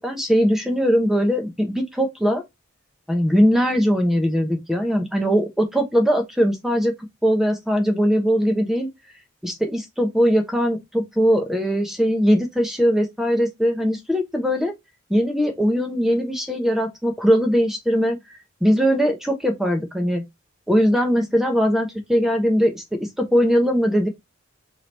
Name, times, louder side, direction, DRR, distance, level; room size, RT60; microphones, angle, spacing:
voice 1, 0.0-2.4 3.1-6.9 7.2-8.9 9.4-14.7 15.1-18.2 18.6-20.2 20.7-24.1, equal, ahead, 0.8 m, -20 dB
3.8 x 2.8 x 3.1 m
head